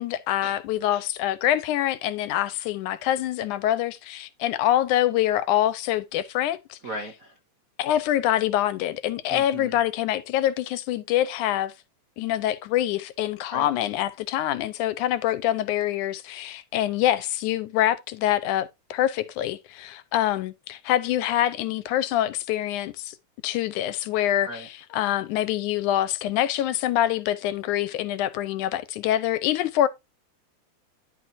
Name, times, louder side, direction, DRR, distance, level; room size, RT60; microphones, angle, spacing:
voice 1, 0.0-6.8 7.8-11.7 12.2-23.2 23.4-29.9, left 12 dB, 90° left, 2.4 m, -25 dB
voice 2, 6.8-7.4 9.3-9.8 13.5-13.7 24.4-24.7, right 1 dB, 60° right, 0.8 m, -37 dB
11.5 x 6.6 x 2.7 m
omnidirectional pair, 3.4 m